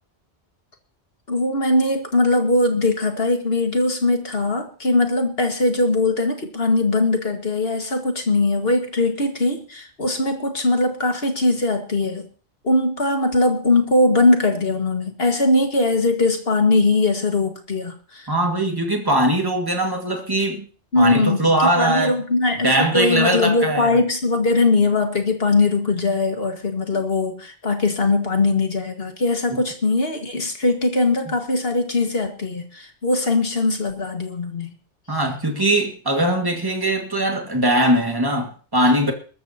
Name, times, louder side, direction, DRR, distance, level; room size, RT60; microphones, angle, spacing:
voice 1, 1.3-12.3 12.6-18.3 20.9-34.7, left 2 dB, 65° left, 2.1 m, -20 dB
voice 2, 18.3-20.7 21.0-22.2 22.6-23.9 35.1-39.1, right 1 dB, 20° right, 2.0 m, -20 dB
21.5 x 13.5 x 2.9 m
omnidirectional pair, 1.1 m